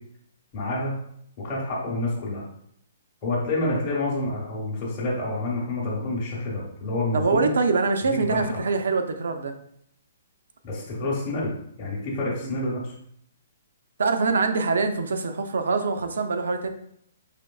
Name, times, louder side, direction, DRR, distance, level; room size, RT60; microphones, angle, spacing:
voice 1, 0.5-0.9 1.4-2.4 3.2-7.5 8.1-8.6 10.6-12.9, left 2 dB, 25° left, -8 dB, 0.8 m, -28 dB
voice 2, 7.1-9.5 12.4-12.5 14.0-16.7, right 4 dB, 85° right, 6 dB, 0.5 m, -24 dB
5.0 x 3.0 x 2.2 m, 0.70 s
hypercardioid pair, 170°, 0 cm